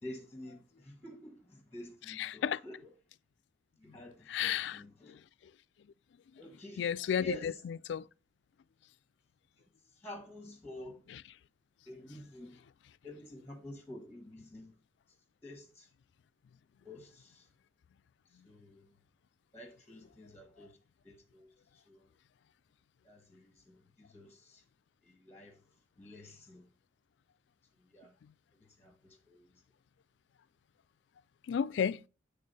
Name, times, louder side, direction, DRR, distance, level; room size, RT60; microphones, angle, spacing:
voice 1, 0.0-2.8 3.8-5.2 6.4-6.9 7.2-7.5 10.0-11.0 11.9-12.6 13.0-14.7 15.4-15.9 16.8-17.5 18.4-18.9 19.5-20.7 21.0-21.5 21.9-22.0 23.0-24.6 25.0-25.6 26.0-26.6 27.9-28.1 28.8-29.5, left 1 dB, 10° left, 1.1 m, -49 dB
voice 2, 2.1-2.6 4.3-4.8 5.1-5.2 6.8-8.1 11.1-11.2 31.5-32.0, left 8 dB, 70° left, 0.3 m, -33 dB
8.6 x 3.5 x 5.3 m
head